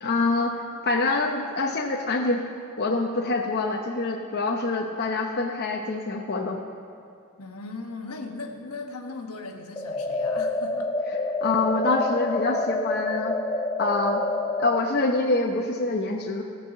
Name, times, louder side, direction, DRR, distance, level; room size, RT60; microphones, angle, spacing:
voice 1, 0.0-2.4 2.8-6.6 11.4-13.3 13.8-14.2 14.6-16.4, left 3 dB, 45° left, 0 dB, 0.8 m, -25 dB
voice 2, 7.4-10.9, left 3 dB, 75° left, 3 dB, 1.2 m, -38 dB
sound 1, 9.8-14.8, left 2 dB, 20° left, 0.6 m, -27 dB
16.5 x 5.7 x 7.5 m, 2.3 s
head